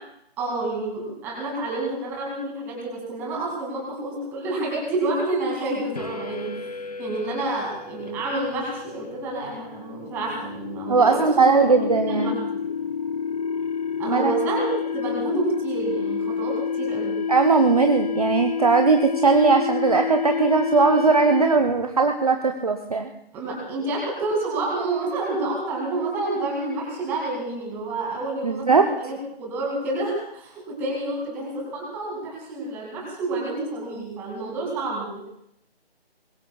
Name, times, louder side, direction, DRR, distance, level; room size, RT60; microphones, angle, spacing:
voice 1, 0.4-6.7 7.0-12.6 14.0-14.7 14.9-17.2 23.3-35.2, right 2 dB, 5° right, -2 dB, 2.1 m, -29 dB
sound 1, 6.0-21.9, left 6 dB, 40° left, 0.7 m, -29 dB
voice 2, 10.9-12.4 14.1-14.4 17.3-23.1 28.4-28.9, right 4 dB, 35° right, 4 dB, 0.8 m, -19 dB
24.5 x 21.0 x 2.3 m, 0.76 s
figure-of-eight pair, 165°, 32 cm